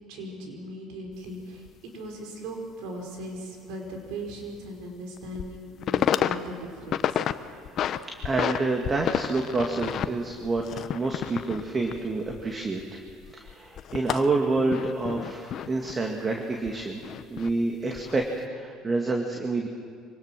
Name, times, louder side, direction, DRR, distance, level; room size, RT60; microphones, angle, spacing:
voice 1, 0.0-1.6 1.9-7.2, right 1 dB, 75° right, 1 dB, 4.8 m, -38 dB
sound 1, 1.1-1.2 1.7-1.8 4.0-4.1 4.5-4.6 5.2-5.6 5.8-6.4 6.7-7.3 7.7-8.6 8.8-12.8 13.1-15.9 16.7-17.5 18.0-18.3, left 10 dB, 55° left, 0.8 m, -30 dB
voice 2, 8.2-13.0 13.3-17.0 17.3-19.7, right 3 dB, 30° right, 2 dB, 2.1 m, -28 dB
24.5 x 18.5 x 6.2 m, 2.2 s
supercardioid pair, 85°, 0 cm